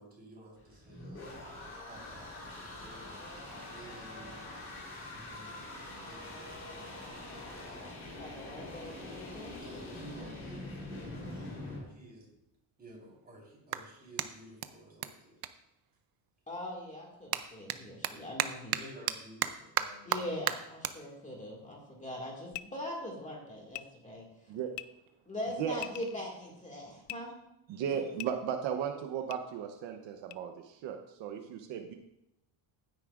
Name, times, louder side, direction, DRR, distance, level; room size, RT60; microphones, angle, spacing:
voice 1, 0.0-1.5 1.9-7.8 9.6-12.3 12.8-15.4 18.7-20.3, right 1 dB, 20° right, -3 dB, 4.2 m, -53 dB
sound 1, 0.6-11.8, left 2 dB, 30° left, 3.7 m, -44 dB
voice 2, 8.2-9.5 16.5-18.8 20.1-24.6 25.3-27.3 27.9-28.1, left 1 dB, 15° left, -2 dB, 2.2 m, -41 dB
Clapping, 12.3-16.4 16.7-23.3, right 12 dB, 50° right, 0.6 m, -38 dB
sound 2, 22.5-22.6 23.7-23.8 24.7-24.8 25.7-26.2 27.0-27.2 28.2-28.3 29.3-29.4 30.3-30.4, left 17 dB, 60° left, 0.5 m, -41 dB
voice 3, 27.7-31.9, right 8 dB, 65° right, 4 dB, 1.0 m, -36 dB
15.5 x 9.7 x 2.5 m, 0.87 s
cardioid pair, 155°, 49 cm